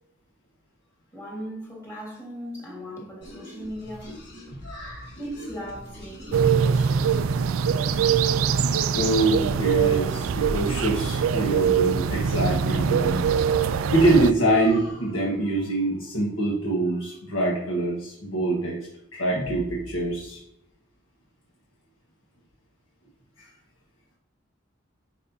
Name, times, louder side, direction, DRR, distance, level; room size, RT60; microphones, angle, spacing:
voice 1, 1.1-4.1 5.2-7.3, equal, 15° left, 1.7 m, -38 dB
sound 1, 3.2-14.9, equal, 55° left, 2.4 m, -45 dB
voice 2, 4.5-5.1 8.9-13.4 13.9-18.8 19.1-20.4, right 1 dB, 80° left, 1.4 m, -24 dB
sound 2, 6.3-14.3, right 7 dB, 85° right, 0.4 m, -23 dB
9.7 x 4.2 x 2.7 m
head